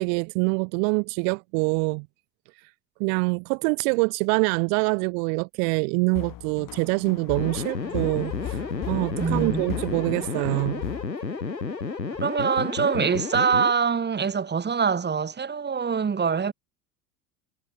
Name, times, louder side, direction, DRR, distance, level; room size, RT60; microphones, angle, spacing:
voice 1, 0.0-2.1 3.0-10.8, right 40 dB or more, 55° right, 1.6 m, -25 dB
sound 1, 6.1-11.1, left 13 dB, 40° left, 6.2 m, -38 dB
sound 2, 7.3-13.7, left 4 dB, 90° left, 4.1 m, -31 dB
voice 2, 9.2-9.7 12.2-16.5, right 6 dB, 20° right, 3.6 m, -24 dB
figure-of-eight pair, 75°, 49 cm